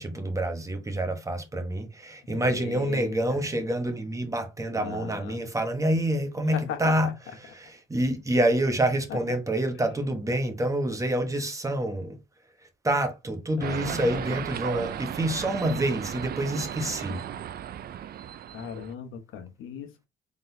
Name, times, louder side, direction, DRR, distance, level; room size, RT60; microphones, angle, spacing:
voice 1, 0.0-7.1 7.4-12.2 12.8-17.2, right 1 dB, 15° right, 1.0 m, -27 dB
voice 2, 2.3-3.5 4.8-5.4 6.5-7.1 13.6-14.3 17.1-17.2 18.5-20.1, left 8 dB, 90° left, 0.9 m, -37 dB
sound 1, 13.6-18.9, right 10 dB, 50° right, 0.4 m, -35 dB
3.8 x 3.7 x 2.7 m
cardioid pair, 90°, 20 cm